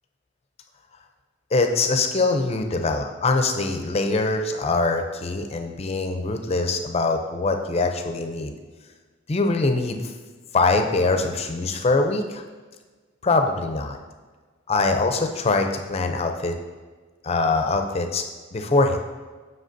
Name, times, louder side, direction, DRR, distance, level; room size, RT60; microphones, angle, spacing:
voice 1, 1.5-8.5 9.3-10.1 10.5-12.4 13.2-14.0 14.7-16.5 17.2-18.2 18.5-19.0, left 3 dB, 30° left, 5 dB, 0.5 m, -23 dB
7.5 x 5.9 x 2.6 m, 1.4 s
head